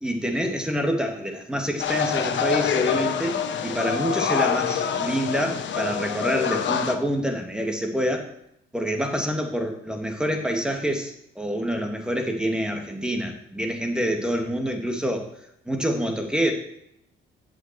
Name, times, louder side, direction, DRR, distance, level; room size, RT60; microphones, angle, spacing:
voice 1, 0.0-8.3 8.7-15.3 15.7-16.5, equal, 5° right, 3 dB, 2.7 m, -27 dB
sound 1, 1.8-6.9, left 7 dB, 65° left, 1.3 m, -26 dB
9.2 x 7.8 x 7.9 m, 0.74 s
cardioid pair, 90°, 20 cm